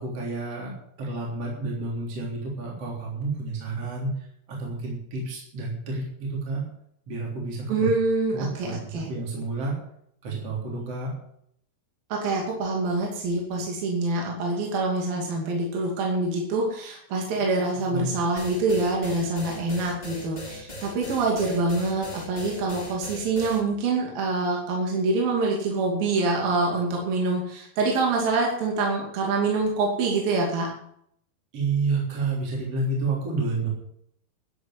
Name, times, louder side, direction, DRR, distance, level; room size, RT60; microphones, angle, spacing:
voice 1, 0.0-6.6 7.1-7.9 8.3-9.7 10.2-11.1 17.9-18.1 31.5-33.7, right 3 dB, 40° right, -3 dB, 4.3 m, -30 dB
voice 2, 7.7-9.1 12.1-30.7, right 3 dB, 60° right, 0 dB, 4.2 m, -25 dB
sound 1, 18.4-23.6, left 1 dB, 15° left, 1.8 m, -39 dB
12.0 x 8.3 x 9.7 m, 0.70 s
omnidirectional pair, 4.7 m